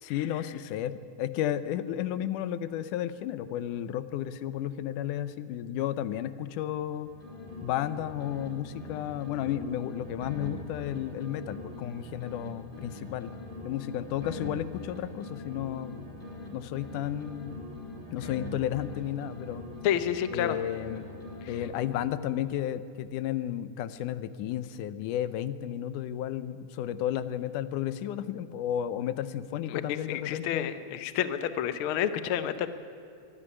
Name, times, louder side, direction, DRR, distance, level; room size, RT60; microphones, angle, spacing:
voice 1, 0.0-7.1 7.6-13.3 13.6-16.1 16.5-17.6 18.1-19.6 20.3-21.1 21.5-30.7, left 11 dB, 85° left, 14 dB, 2.3 m, -33 dB
sound 1, 6.8-8.5 8.7-12.5 12.7-16.5 16.7-20.5 20.7-22.1, left 2 dB, 15° left, 3.3 m, -43 dB
voice 2, 19.8-20.6 21.4-21.6 29.7-32.7, left 10 dB, 70° left, 12 dB, 1.3 m, -30 dB
24.0 x 11.5 x 9.9 m, 2.6 s
omnidirectional pair, 3.5 m